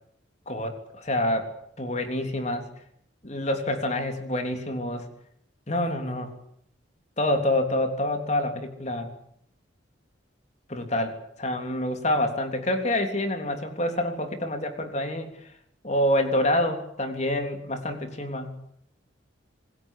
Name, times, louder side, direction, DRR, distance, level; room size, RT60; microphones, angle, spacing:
voice 1, 0.5-1.5 1.8-2.6 3.2-5.1 5.7-6.3 7.2-9.1 10.7-15.3 15.8-18.5, left 1 dB, 35° left, 6 dB, 3.4 m, -27 dB
27.0 x 21.0 x 8.4 m, 0.70 s
head